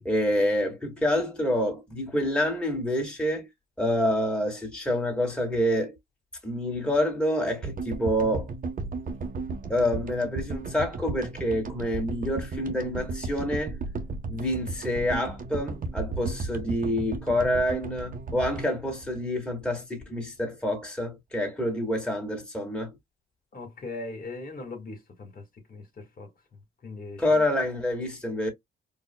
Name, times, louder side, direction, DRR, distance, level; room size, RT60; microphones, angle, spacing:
voice 1, 0.0-3.5 3.8-6.0 6.4-8.5 9.6-13.8 14.3-23.0 27.2-28.5, left 1 dB, 5° left, 2.3 m, -27 dB
sound 1, 7.6-20.0, right 3 dB, 45° right, 1.2 m, -35 dB
voice 2, 23.5-25.4 25.7-26.3 26.8-27.2, left 3 dB, 45° left, 2.0 m, -39 dB
4.7 x 2.6 x 2.3 m
cardioid pair, 90°, 20 cm